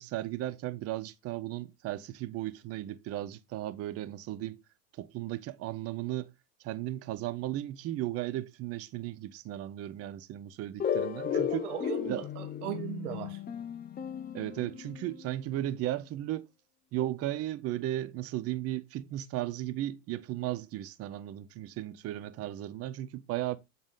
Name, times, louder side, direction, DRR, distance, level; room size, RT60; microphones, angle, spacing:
voice 1, 0.0-4.6 5.0-6.3 6.6-11.7 12.1-12.2 14.3-16.5 16.9-23.6, right 14 dB, 30° right, 0.5 m, -35 dB
sound 1, 10.8-15.4, left 8 dB, 20° left, 0.7 m, -34 dB
voice 2, 11.3-13.4, right 14 dB, 70° right, 1.0 m, -38 dB
7.2 x 3.9 x 3.6 m
hypercardioid pair, 110°, 46 cm